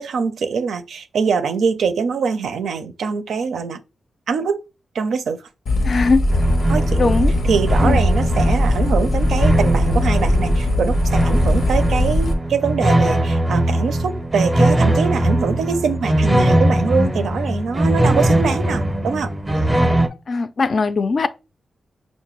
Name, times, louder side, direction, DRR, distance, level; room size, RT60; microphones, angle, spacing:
voice 1, 0.0-3.8 4.3-4.6 4.9-5.5 6.7-7.1 7.4-19.3, right 5 dB, 85° right, 0.4 m, -23 dB
sound 1, 5.7-12.3, left 1 dB, 90° left, 0.7 m, -19 dB
voice 2, 5.8-6.2 7.0-7.3 7.8-8.0 20.3-21.3, left 4 dB, 45° left, 0.3 m, -19 dB
sound 2, 6.3-20.1, right 1 dB, 10° right, 0.5 m, -20 dB
5.7 x 2.1 x 3.0 m
wide cardioid pair, 120°, 0 cm